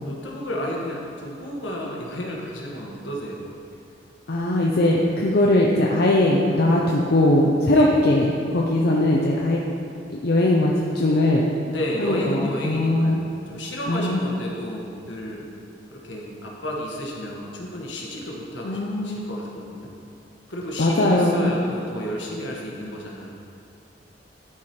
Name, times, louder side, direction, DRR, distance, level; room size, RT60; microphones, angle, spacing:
voice 1, 0.0-3.4 7.7-8.0 11.7-15.5 15.9-19.9 20.5-23.3, equal, 75° left, -2 dB, 1.5 m, -32 dB
voice 2, 4.3-9.6 10.1-11.4 12.0-13.2 13.9-14.2 18.6-19.3 20.8-21.5, left 1 dB, 55° left, -3 dB, 0.7 m, -20 dB
12.0 x 4.8 x 4.4 m, 2.6 s
head